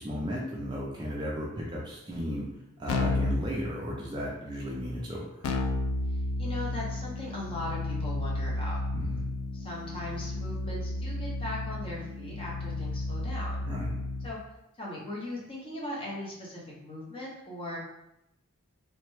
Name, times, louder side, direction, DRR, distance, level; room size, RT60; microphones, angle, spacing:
voice 1, 0.0-2.5 2.8-5.2 8.9-9.3 13.6-13.9, equal, 20° right, -4 dB, 0.4 m, -35 dB
Keyboard (musical), 2.9-3.4 5.4-14.3, left 2 dB, 80° left, 0.4 m, -32 dB
voice 2, 6.4-8.8 9.5-13.7 14.2-14.4 14.8-17.8, left 1 dB, 25° left, -4 dB, 0.7 m, -39 dB
3.2 x 2.1 x 3.1 m, 0.87 s
head